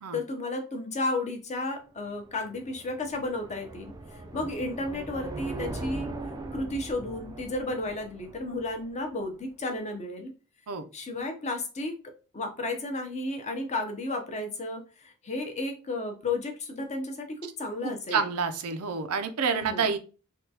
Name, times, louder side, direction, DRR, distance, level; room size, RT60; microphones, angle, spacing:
voice 1, 0.1-3.9 4.3-6.1 6.5-10.3 10.9-18.2 19.5-19.9, left 2 dB, 30° left, 4 dB, 0.6 m, -33 dB
sound 1, 1.9-9.3, right 2 dB, 15° right, 0.3 m, -40 dB
voice 2, 17.8-20.0, right 5 dB, 80° right, 8 dB, 0.5 m, -28 dB
3.5 x 2.2 x 2.7 m, 0.35 s
head